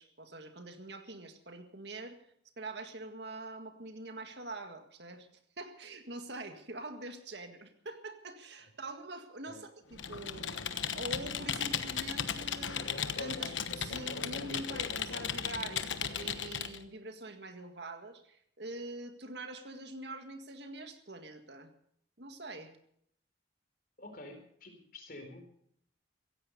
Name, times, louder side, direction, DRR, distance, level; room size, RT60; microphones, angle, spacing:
voice 1, 0.0-2.2 2.6-5.3 5.6-10.6 10.9-12.8 13.2-21.7 22.2-22.7, right 2 dB, 65° right, 6 dB, 1.9 m, -44 dB
Computer keyboard, 9.9-16.8, left 7 dB, 90° left, 1.2 m, -36 dB
sound 1, 9.9-16.8, right 1 dB, 35° right, 5.6 m, -58 dB
voice 2, 24.0-25.5, left 2 dB, 50° left, 5 dB, 4.2 m, -49 dB
16.5 x 16.0 x 5.3 m, 0.70 s
head